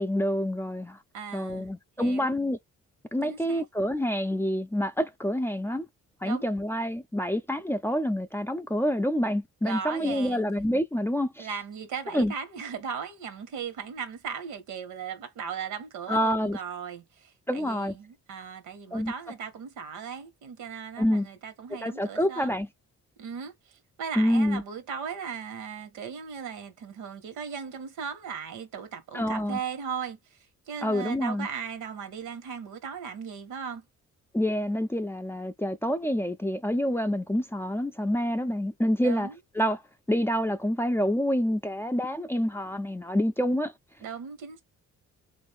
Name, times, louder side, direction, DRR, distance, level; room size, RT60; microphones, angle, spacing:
voice 1, 0.0-1.0 1.3-2.6 3.1-5.9 6.2-11.5 12.1-12.3 16.1-16.6 17.5-17.9 18.9-19.1 21.0-21.3 21.8-22.7 24.2-24.6 29.1-29.6 30.8-31.5 34.3-39.8 40.1-43.7, equal, 10° left, 0.4 m, -27 dB
voice 2, 1.1-1.7 2.0-2.4 3.2-3.7 6.2-6.5 9.6-10.4 11.4-22.5 23.2-30.2 30.7-33.8 39.0-39.4 44.0-44.6, right 7 dB, 90° right, 1.3 m, -37 dB
3.5 x 2.6 x 3.4 m
cardioid pair, 90°, 30 cm